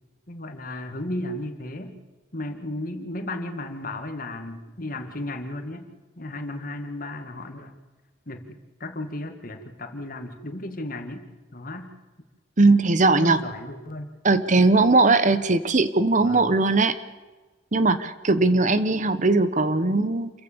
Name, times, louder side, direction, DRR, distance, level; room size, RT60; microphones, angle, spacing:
voice 1, 0.3-2.0 2.3-5.9 6.2-7.7 8.3-11.2 11.5-11.9 13.1-14.1 16.2-16.5, left 1 dB, 45° left, 6 dB, 2.2 m, -34 dB
voice 2, 12.6-13.4 14.2-17.0 17.7-20.3, right 3 dB, 40° right, 13 dB, 1.0 m, -19 dB
28.0 x 15.0 x 7.0 m, 1.3 s
head